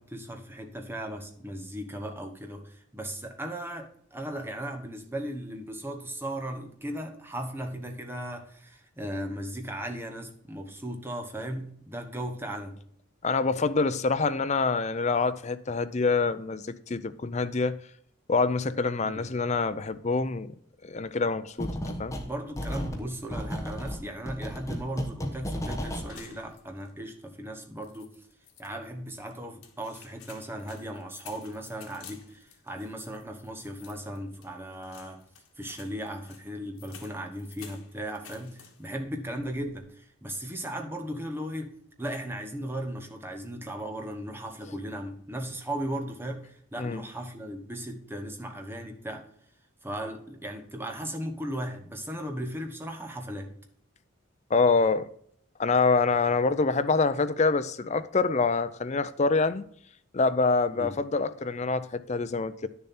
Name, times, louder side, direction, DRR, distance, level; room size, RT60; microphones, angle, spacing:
voice 1, 0.0-12.8 19.0-19.3 22.2-28.1 28.6-35.2 35.6-49.3 49.8-53.5 60.7-61.0, right 1 dB, 10° right, 1.1 m, -37 dB
voice 2, 13.2-17.8 18.3-20.5 20.8-22.1 46.8-47.0 54.5-55.1 55.6-59.7 60.1-62.7, left 4 dB, 30° left, 0.5 m, -26 dB
sound 1, 21.6-22.3 22.6-26.1, equal, 15° left, 1.1 m, -33 dB
sound 2, 26.1-27.0 27.3-27.4 27.8-28.7 29.3-39.0 39.3-39.9, left 7 dB, 80° left, 1.7 m, -52 dB
10.0 x 6.9 x 4.3 m
head